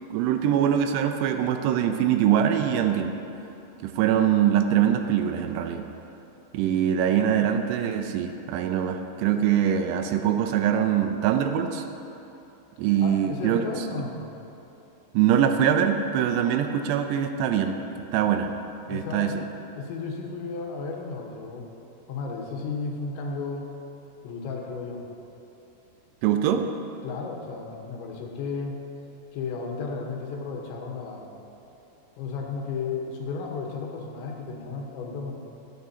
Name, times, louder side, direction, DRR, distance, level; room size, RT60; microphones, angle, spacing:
voice 1, 0.1-3.2 3.8-5.8 6.5-11.9 12.8-13.9 15.1-17.8 18.1-18.5 18.9-19.4 26.2-26.7, right 9 dB, 80° right, 6 dB, 2.7 m, -23 dB
voice 2, 13.0-14.2 18.9-19.4 19.8-21.7 22.1-23.7 24.2-25.0 27.0-28.8 29.3-31.3 32.2-35.4, left 4 dB, 85° left, 0 dB, 3.5 m, -34 dB
22.5 x 8.7 x 2.8 m, 3.0 s
omnidirectional pair, 5.1 m